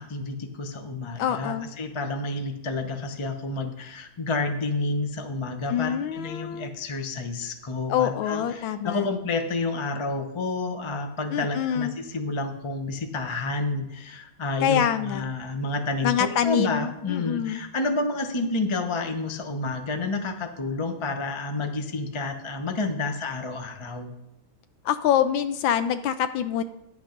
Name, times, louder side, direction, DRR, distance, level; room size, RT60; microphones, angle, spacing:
voice 1, 0.0-24.1, left 3 dB, 45° left, 5 dB, 0.4 m, -30 dB
voice 2, 1.2-1.7 5.7-6.7 7.9-9.1 11.3-11.9 14.6-15.2 16.0-17.6 24.8-26.6, left 9 dB, 75° left, 11 dB, 1.3 m, -25 dB
11.0 x 8.4 x 5.2 m, 0.87 s
omnidirectional pair, 2.3 m